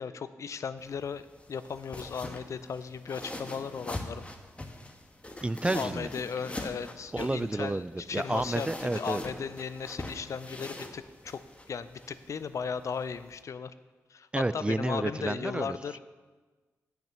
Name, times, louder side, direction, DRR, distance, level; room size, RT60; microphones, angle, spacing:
voice 1, 0.0-4.2 5.7-11.4 11.7-13.7 14.1-16.0, left 6 dB, 65° left, 13 dB, 0.5 m, -36 dB
sound 1, 0.8-13.4, left 1 dB, 20° left, 1.3 m, -43 dB
voice 2, 5.4-6.1 7.1-9.2 14.3-16.0, right 2 dB, 20° right, 16 dB, 0.3 m, -30 dB
9.0 x 5.8 x 6.7 m, 1.3 s
supercardioid pair, 45°, 6 cm